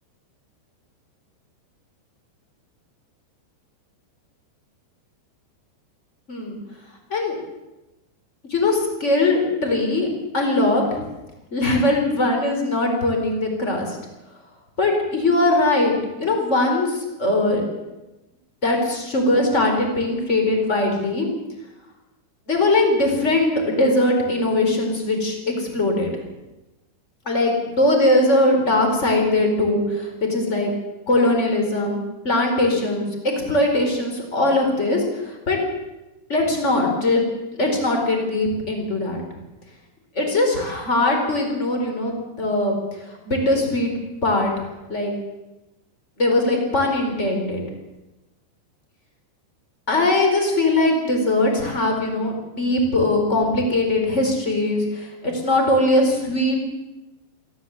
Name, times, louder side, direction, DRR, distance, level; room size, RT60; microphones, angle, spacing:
voice 1, 6.3-6.6 7.1-7.4 8.5-10.1 10.3-11.0 11.5-14.0 14.8-15.9 16.2-17.6 18.6-21.3 22.5-26.1 27.3-30.7 31.1-33.1 33.4-35.6 36.3-37.2 37.5-39.2 40.2-42.7 43.2-43.9 44.2-44.5 44.9-45.1 46.2-47.6 49.9-56.6, left 2 dB, 15° left, 2 dB, 4.3 m, -20 dB
29.0 x 13.5 x 8.0 m, 1.0 s
omnidirectional pair, 5.4 m